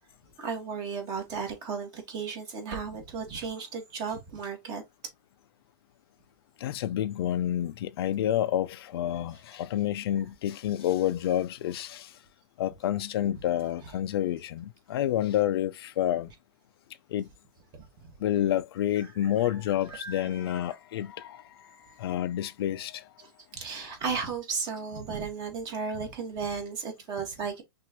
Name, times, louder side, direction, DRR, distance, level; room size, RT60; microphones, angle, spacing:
voice 1, 0.4-4.8 13.8-13.9 17.8-18.1 19.2-19.6 19.9-20.7 23.2-27.6, right 5 dB, 30° right, 1.8 m, -35 dB
voice 2, 6.6-12.1 12.6-16.3 17.1-17.3 18.2-21.7 22.0-23.1, left 11 dB, 70° left, 0.5 m, -29 dB
6.0 x 2.6 x 3.0 m
supercardioid pair, 155°, 13 cm